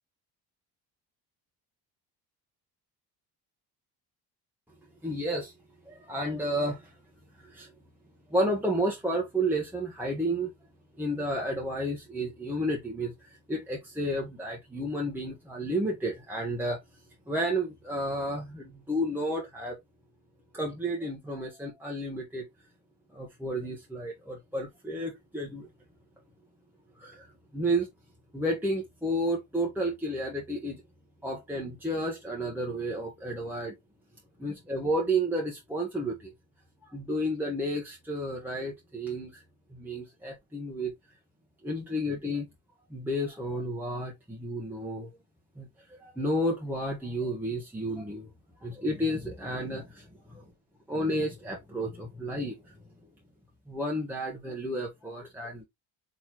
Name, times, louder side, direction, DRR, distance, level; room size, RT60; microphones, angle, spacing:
voice 1, 5.0-5.5 5.9-6.9 7.4-7.7 8.3-10.5 11.0-16.8 17.3-19.8 20.5-22.4 23.1-25.7 27.0-27.3 27.5-27.9 28.3-30.8 31.2-33.7 34.4-36.3 36.9-39.4 39.7-40.9 41.6-42.5 42.9-45.1 45.6-48.3 48.6-50.4 50.9-52.6 53.7-55.6, right 1 dB, 5° right, 1.0 m, -31 dB
4.2 x 3.1 x 2.9 m
supercardioid pair, 85°, 42 cm